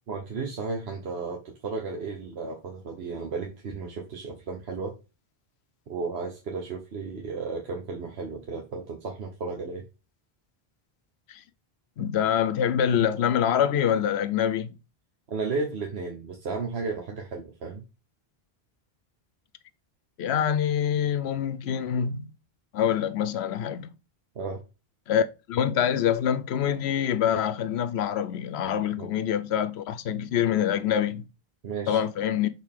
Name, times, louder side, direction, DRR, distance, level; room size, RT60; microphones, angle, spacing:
voice 1, 0.1-4.9 5.9-9.8 15.3-17.8 24.3-24.6 29.0-29.1 31.6-32.0, right 4 dB, 85° right, 1.3 m, -34 dB
voice 2, 12.0-14.8 20.2-22.3 22.7-23.9 25.1-31.2 31.9-32.5, left 9 dB, 90° left, 0.9 m, -25 dB
6.5 x 4.0 x 3.6 m
omnidirectional pair, 1.0 m